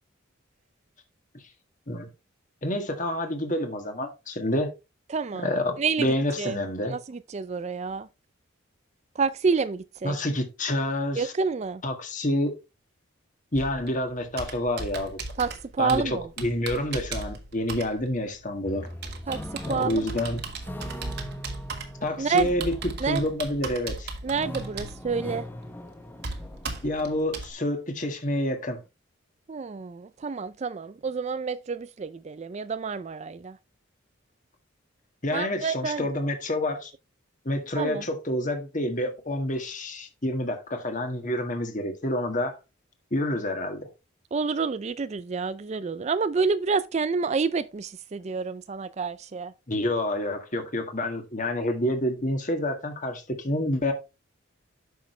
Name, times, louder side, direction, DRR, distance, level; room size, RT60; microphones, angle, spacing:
voice 1, 2.6-4.7 5.3-7.0 10.0-11.3 11.8-12.5 13.5-15.2 15.8-18.9 19.7-20.4 22.0-24.1 26.8-28.8 35.2-36.9 37.5-42.6 43.1-43.9 49.7-53.9, left 1 dB, 40° left, 1.8 m, -28 dB
voice 2, 5.1-5.5 5.8-6.1 6.4-6.6 6.9-8.1 9.2-10.2 11.2-11.8 15.4-16.3 19.3-19.4 19.7-20.0 22.2-22.5 23.0-23.2 24.2-25.4 29.5-33.6 35.3-36.1 37.8-38.0 44.3-49.5, right 5 dB, 35° right, 0.3 m, -28 dB
Computer keyboard, 13.5-27.5, right 3 dB, 50° right, 1.6 m, -38 dB
sound 1, 18.6-23.8 24.2-27.4, equal, 10° left, 0.8 m, -41 dB
9.2 x 6.4 x 3.2 m
head